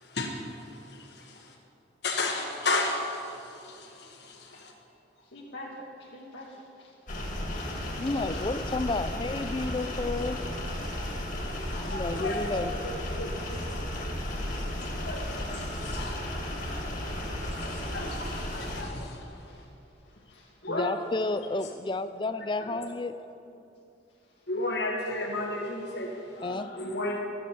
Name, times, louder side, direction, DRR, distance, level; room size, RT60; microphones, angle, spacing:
voice 1, 0.0-1.5 2.0-4.7 11.5-11.7 12.1-13.6 14.6-16.0 17.4-19.6 20.6-20.9 22.7-22.8 24.5-26.4 26.8-27.2, left 2 dB, 60° left, 0 dB, 1.3 m, -34 dB
voice 2, 5.2-8.4 11.7-12.3 15.9-16.7 19.5-20.7 24.2-24.5 26.3-27.0, left 1 dB, 75° left, -5 dB, 1.6 m, -47 dB
sound 1, 7.1-18.8, left 1 dB, 45° left, 2.1 m, -34 dB
voice 3, 8.0-10.5 11.9-12.7 20.7-23.2 26.4-26.7, left 2 dB, 25° left, 12 dB, 0.4 m, -31 dB
13.0 x 8.4 x 7.0 m, 2.7 s
head